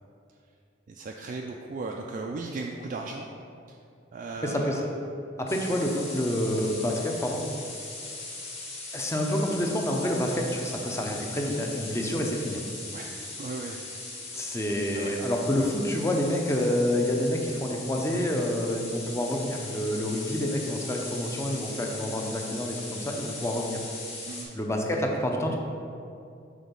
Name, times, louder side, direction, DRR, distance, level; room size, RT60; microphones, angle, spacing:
voice 1, 0.9-3.3 3.7-3.8 4.1-4.9 12.9-13.1 13.4-14.2 14.9-15.1 24.3-24.6, right 3 dB, 45° right, 1 dB, 0.3 m, -37 dB
voice 2, 4.4-4.9 5.4-7.4 8.9-12.6 14.3-23.8 24.5-25.6, left 1 dB, 15° left, 1 dB, 0.6 m, -28 dB
sound 1, 5.5-24.4, left 2 dB, 35° left, 1.4 m, -39 dB
6.2 x 3.8 x 5.2 m, 2.5 s
head